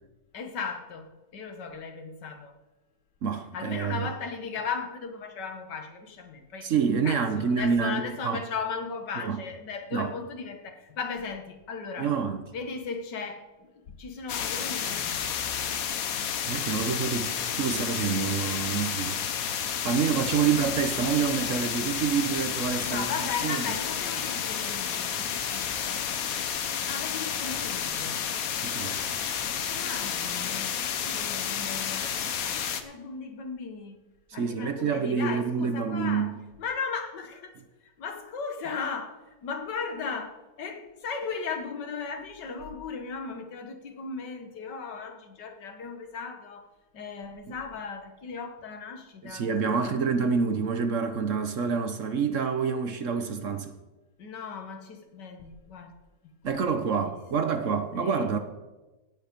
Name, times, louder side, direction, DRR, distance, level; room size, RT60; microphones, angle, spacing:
voice 1, 0.3-2.5 3.5-6.7 7.0-12.1 12.5-13.7 14.0-15.3 22.9-26.0 26.9-28.2 29.6-32.2 32.8-34.0 34.3-36.3 36.6-37.6 37.8-46.7 46.9-50.0 54.2-55.9 56.5-56.7 57.0-57.2 57.9-58.3, left 5 dB, 80° left, 2.0 m, -37 dB
voice 2, 3.2-4.1 6.6-8.4 9.2-9.4 9.9-10.1 12.0-12.4 16.4-19.2 19.8-23.1 23.4-23.6 25.2-25.3 28.5-29.0 34.4-36.4 47.5-47.6 49.2-53.7 56.4-58.4, right 6 dB, 55° right, 1.1 m, -27 dB
sound 1, 14.3-32.8, left 8 dB, 60° left, 1.3 m, -31 dB
17.0 x 8.1 x 5.2 m
omnidirectional pair, 1.8 m